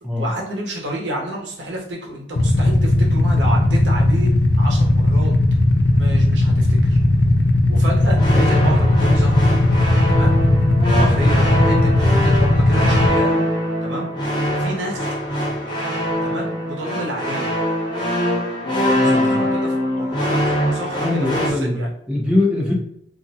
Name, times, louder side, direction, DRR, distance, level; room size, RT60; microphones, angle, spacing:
voice 1, 0.0-4.3 4.6-5.3 5.9-7.0 7.7-9.4 10.1-10.4 10.9-13.4 13.8-14.1 14.5-15.1 16.2-17.5 18.9-21.1 21.3-21.9, equal, 75° right, -1 dB, 0.9 m, -30 dB
Motorcycle / Idling, 2.4-13.1, left 1 dB, 75° left, 0.5 m, -16 dB
sound 1, 8.1-21.5, equal, 25° left, 0.9 m, -22 dB
voice 2, 18.9-19.5 21.0-22.7, left 2 dB, 5° right, -4 dB, 0.6 m, -22 dB
2.6 x 2.1 x 4.0 m, 0.73 s
head